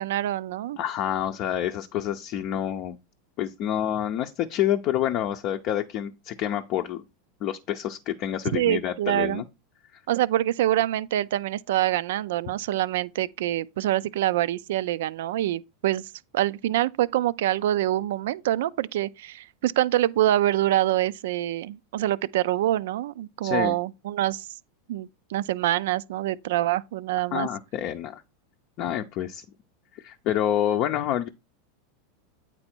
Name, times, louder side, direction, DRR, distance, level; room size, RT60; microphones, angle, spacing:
voice 1, 0.0-0.8 8.5-9.4 10.1-24.5 24.9-27.5, right 13 dB, 75° right, 0.4 m, -25 dB
voice 2, 0.8-3.0 3.4-7.0 7.4-9.4 23.4-23.7 27.3-28.2 28.8-29.4 30.0-31.3, left 11 dB, 50° left, 0.5 m, -28 dB
8.8 x 4.2 x 4.4 m
supercardioid pair, 120°, 0 cm